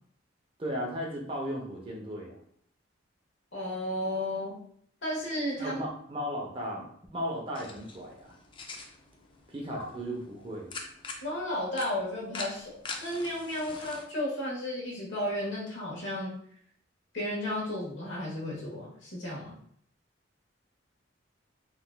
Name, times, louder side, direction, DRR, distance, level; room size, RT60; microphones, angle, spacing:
voice 1, 0.6-2.4 5.6-6.9 7.1-8.4 9.5-10.7, equal, 30° right, -1 dB, 0.6 m, -35 dB
voice 2, 3.5-4.6 5.0-5.7 11.2-16.4 17.1-19.6, left 1 dB, 70° left, -4 dB, 1.2 m, -33 dB
Stricking a Match, 7.5-14.0, left 4 dB, 25° left, 0.3 m, -44 dB
3.8 x 2.4 x 2.2 m, 0.64 s
head